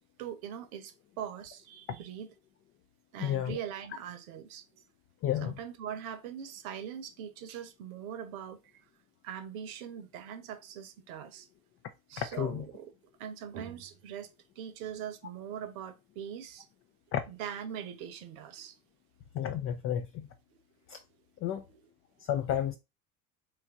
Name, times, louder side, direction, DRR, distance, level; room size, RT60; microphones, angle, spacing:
voice 1, 0.2-2.3 3.1-4.6 5.4-8.6 9.2-11.5 12.1-12.9 13.2-14.3 14.6-16.6 17.3-18.8, right 9 dB, 70° right, 0.8 m, -41 dB
voice 2, 3.2-3.6 5.2-5.6 12.2-12.7 17.1-17.2 19.3-20.3 20.9-21.0 21.4-21.7 22.2-22.7, left 10 dB, 35° left, 0.4 m, -31 dB
3.0 x 2.5 x 3.5 m
hypercardioid pair, 70°, 44 cm